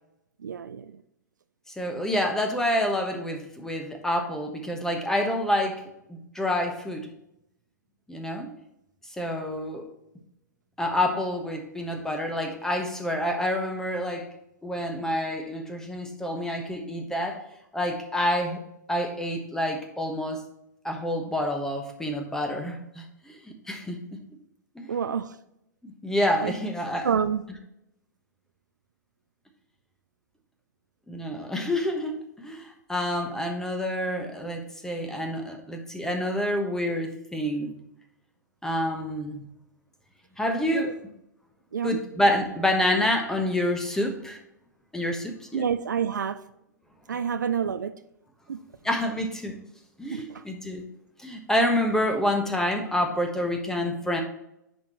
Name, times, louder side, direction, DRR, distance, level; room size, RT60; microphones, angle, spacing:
voice 1, 0.4-0.9 24.9-25.3 26.4-26.5 27.0-27.4 40.7-40.9 41.7-42.0 45.5-46.4 47.1-48.0 48.5-48.6 50.1-50.4, right 7 dB, 75° right, 12 dB, 0.5 m, -28 dB
voice 2, 1.8-5.8 6.1-7.1 8.1-8.5 9.1-9.9 10.8-14.3 14.6-17.4 17.7-18.6 18.9-20.4 20.8-23.3 23.7-24.0 24.7-24.9 25.8-27.1 31.1-37.8 38.6-39.5 40.4-40.9 41.8-44.4 44.9-45.7 48.8-49.6 50.0-50.8 51.2-54.2, left 1 dB, 5° left, 4 dB, 1.2 m, -28 dB
10.0 x 4.4 x 3.1 m, 0.82 s
figure-of-eight pair, 105°, 10 cm